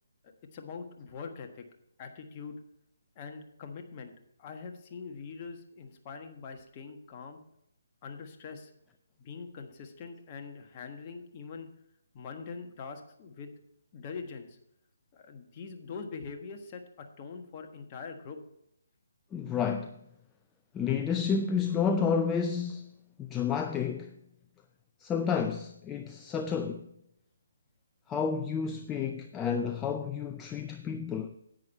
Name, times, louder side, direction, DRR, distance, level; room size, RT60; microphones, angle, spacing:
voice 1, 0.5-1.7 2.0-2.6 3.1-4.1 4.4-7.4 8.0-8.7 9.2-11.7 12.1-13.5 13.9-14.6 15.1-18.4, left 5 dB, 30° left, 1.4 m, -43 dB
voice 2, 19.3-20.0 20.7-22.9 23.2-24.2 25.0-26.9 28.1-31.4, left 6 dB, 15° left, 0.5 m, -30 dB
10.5 x 8.8 x 4.2 m
figure-of-eight pair, 150°, 0 cm